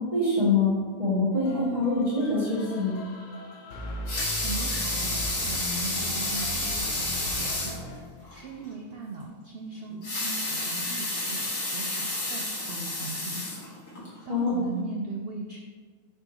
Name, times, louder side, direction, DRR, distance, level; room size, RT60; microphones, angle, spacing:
voice 1, 0.0-2.9 14.3-14.7, left 2 dB, 20° right, -11 dB, 1.7 m, -25 dB
sound 1, 1.3-8.0, right 1 dB, 60° left, 1.1 m, -38 dB
Water tap faucet / Sink (filling or washing) / Liquid, 3.9-7.8 8.3-8.4 8.7-8.8 9.9-14.0 14.6-14.7, left 2 dB, 80° left, 2.4 m, -30 dB
voice 2, 4.4-7.8 8.3-13.4 14.3-15.6, right 3 dB, 70° right, 1 dB, 0.5 m, -39 dB
6.9 x 5.1 x 2.9 m, 1.5 s
omnidirectional pair, 1.6 m